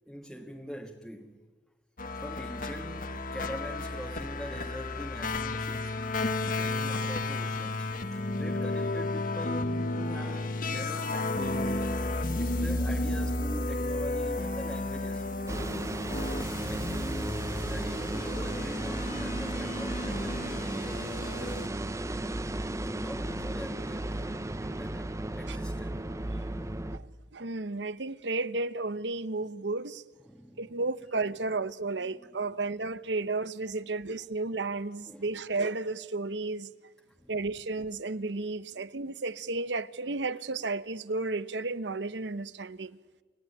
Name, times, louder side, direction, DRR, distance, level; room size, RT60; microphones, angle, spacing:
voice 1, 0.1-1.4 2.1-6.1 6.5-11.8 12.4-15.3 16.7-21.7 22.0-22.5 22.8-26.1 29.4-29.5 30.2-30.7 31.4-31.6 31.9-32.7 33.8-33.9 35.1-35.3 37.1-37.5 38.8-38.9, equal, ahead, 1.5 m, -44 dB
sound 1, 2.0-21.7, left 2 dB, 50° left, 1.7 m, -33 dB
sound 2, 15.5-27.0, right 1 dB, 20° right, 0.8 m, -34 dB
voice 2, 27.3-30.0 30.6-36.7 37.3-43.0, right 3 dB, 85° right, 0.9 m, -33 dB
29.5 x 16.0 x 9.9 m
head